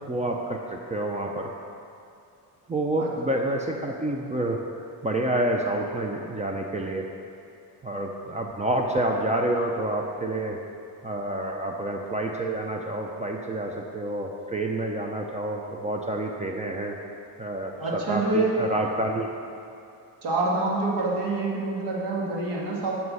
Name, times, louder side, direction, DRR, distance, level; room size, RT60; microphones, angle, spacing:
voice 1, 0.1-1.5 2.7-4.6 5.0-7.1 7.8-10.6 11.0-17.0 17.4-19.3, right 1 dB, 15° right, 1 dB, 0.6 m, -28 dB
voice 2, 17.8-18.5 20.2-22.9, right 2 dB, 65° right, -3 dB, 2.1 m, -26 dB
9.6 x 6.0 x 5.5 m, 2.6 s
cardioid pair, 140°, 42 cm